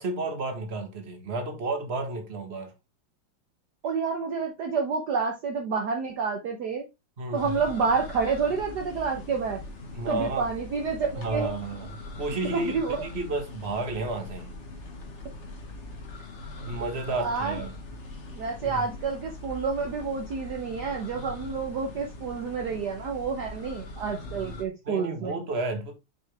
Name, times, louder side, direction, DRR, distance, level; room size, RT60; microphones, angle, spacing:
voice 1, 0.0-2.7 7.2-7.5 9.9-10.4 11.1-14.5 16.7-17.7 18.6-18.9 24.8-25.9, right 2 dB, 30° right, 1.7 m, -32 dB
voice 2, 3.8-6.8 7.3-9.6 10.1-11.5 12.5-13.0 17.1-17.6 18.3-25.4, right 5 dB, 60° right, 1.5 m, -29 dB
sound 1, 7.4-24.6, left 2 dB, 35° left, 1.5 m, -41 dB
6.8 x 5.8 x 3.4 m
omnidirectional pair, 2.3 m